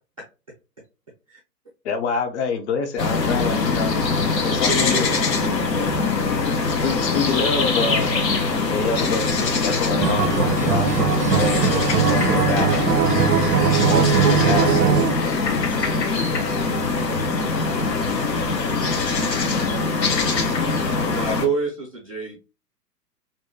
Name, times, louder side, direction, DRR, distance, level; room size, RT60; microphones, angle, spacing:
voice 1, 1.8-3.9 4.4-5.2 5.7-5.9 6.8-8.2 8.6-12.7 13.9-14.9, left 5 dB, 45° left, 0.6 m, -27 dB
sound 1, 3.0-21.5, left 4 dB, 90° left, 0.7 m, -22 dB
voice 2, 4.5-5.1 5.5-5.6 21.1-22.4, right 4 dB, 25° right, 0.3 m, -27 dB
Acoustic guitar, 10.0-15.1, right 7 dB, 70° right, 0.6 m, -20 dB
voice 3, 16.4-17.1 17.7-18.1, left 4 dB, 70° left, 1.1 m, -41 dB
2.7 x 2.1 x 2.6 m
figure-of-eight pair, 115°, 48 cm